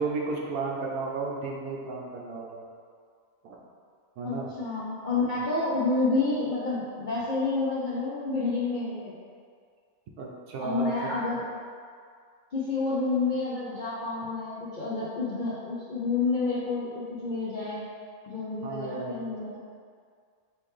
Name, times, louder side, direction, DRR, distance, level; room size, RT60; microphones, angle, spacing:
voice 1, 0.0-2.6 3.4-3.6 4.2-4.5 10.2-11.1 18.6-19.4, right 3 dB, 80° right, -1 dB, 1.1 m, -33 dB
voice 2, 4.2-9.1 10.6-11.4 12.5-17.8 18.3-19.6, left 3 dB, 65° left, -8 dB, 0.4 m, -29 dB
4.4 x 3.2 x 3.2 m, 2.1 s
omnidirectional pair, 1.6 m